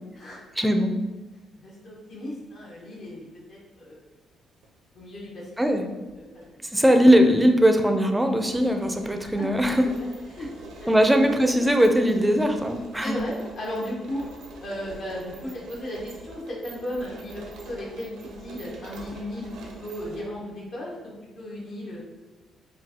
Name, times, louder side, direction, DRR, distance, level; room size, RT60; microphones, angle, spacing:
voice 1, 0.6-0.9 5.6-5.9 6.7-9.9 10.9-13.2, equal, 5° right, 5 dB, 0.4 m, -20 dB
voice 2, 1.6-4.0 4.9-5.8 6.2-6.6 9.2-9.5 9.8-10.5 10.8-11.0 13.0-14.3 14.6-22.0, left 1 dB, 70° left, -5 dB, 1.0 m, -36 dB
sound 1, 4.4-4.7 5.7-6.5 6.7-6.8 7.3-20.2, right 3 dB, 85° right, 0.7 m, -45 dB
5.3 x 2.3 x 2.8 m, 1.2 s
cardioid pair, 90°, 0 cm